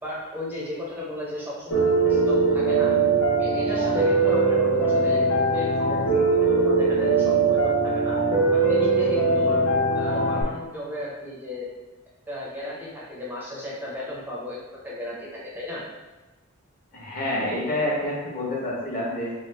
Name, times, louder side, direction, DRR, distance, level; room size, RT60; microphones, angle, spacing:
voice 1, 0.0-2.9 3.4-8.2 8.5-9.6 9.9-11.7 12.3-15.8, left 1 dB, 10° right, -6 dB, 0.5 m, -35 dB
Piano, 1.7-10.4, right 3 dB, 85° left, 0.9 m, -21 dB
voice 2, 16.9-19.3, left 1 dB, 40° left, -4 dB, 0.8 m, -28 dB
3.0 x 2.3 x 3.2 m, 1.1 s
head